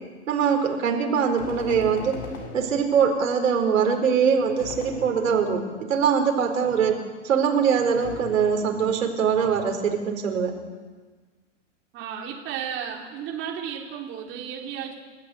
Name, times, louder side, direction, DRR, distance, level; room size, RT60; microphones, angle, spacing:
voice 1, 0.3-2.2 2.5-7.0 7.2-10.5, right 6 dB, 85° right, 3 dB, 4.9 m, -22 dB
sound 1, 1.4-3.3 4.6-5.8 8.0-9.0, left 3 dB, 85° left, 6.6 m, -40 dB
voice 2, 11.9-14.9, right 8 dB, 30° right, -2 dB, 4.0 m, -33 dB
30.0 x 14.5 x 8.2 m, 1.4 s
hypercardioid pair, 140°, 38 cm